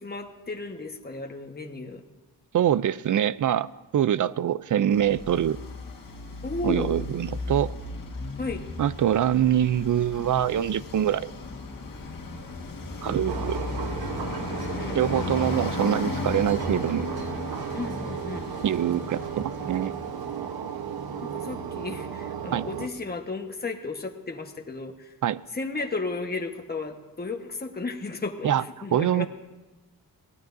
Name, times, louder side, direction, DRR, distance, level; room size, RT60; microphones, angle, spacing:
voice 1, 0.0-2.0 6.4-6.9 8.4-8.6 14.5-15.0 17.7-18.5 21.2-25.1 25.5-28.5 28.8-29.3, left 3 dB, 25° left, 4 dB, 1.3 m, -34 dB
voice 2, 2.5-3.7 3.9-5.6 6.6-7.7 8.8-11.3 13.0-13.6 14.9-17.1 18.6-19.9 22.5-22.7 25.2-25.4 28.4-28.6 28.9-29.3, right 10 dB, 55° right, 17 dB, 0.5 m, -24 dB
Traffic noise roadway noise, 4.9-20.4, left 3 dB, 65° left, 1.7 m, -35 dB
sound 1, 13.3-22.9, right 7 dB, 90° right, 1.0 m, -34 dB
23.0 x 16.5 x 2.6 m, 1.1 s
wide cardioid pair, 95°, 36 cm